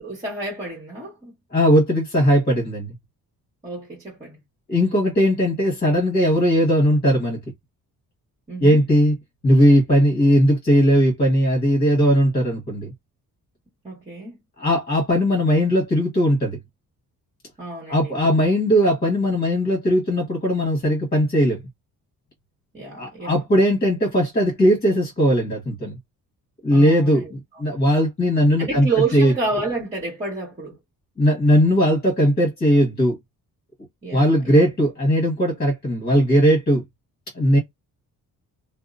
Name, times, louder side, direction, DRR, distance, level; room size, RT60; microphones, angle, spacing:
voice 1, 0.0-1.3 3.6-4.4 8.5-8.8 13.8-14.4 17.6-18.1 22.7-23.4 26.7-27.6 28.6-30.8 34.0-34.7, right 3 dB, 20° right, 1.4 m, -29 dB
voice 2, 1.5-2.9 4.7-7.4 8.6-9.1 9.4-12.9 14.6-16.6 17.9-21.6 23.0-26.0 26.6-29.3 31.2-33.2 34.1-36.8 37.3-37.6, equal, 25° left, 1.3 m, -18 dB
2.7 x 2.1 x 2.5 m
cardioid pair, 130°, 37 cm